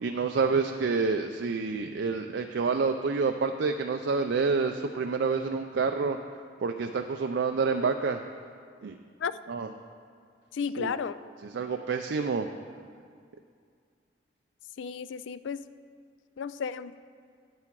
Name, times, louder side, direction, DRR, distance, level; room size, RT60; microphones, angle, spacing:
voice 1, 0.0-6.2 6.6-8.2 8.8-9.0 9.5-9.7 10.8-10.9 11.5-12.5, right 4 dB, 70° right, 5 dB, 0.4 m, -28 dB
voice 2, 10.5-11.1 14.8-15.6 16.4-16.9, left 6 dB, 80° left, 14 dB, 0.4 m, -33 dB
11.0 x 8.7 x 4.6 m, 2.2 s
head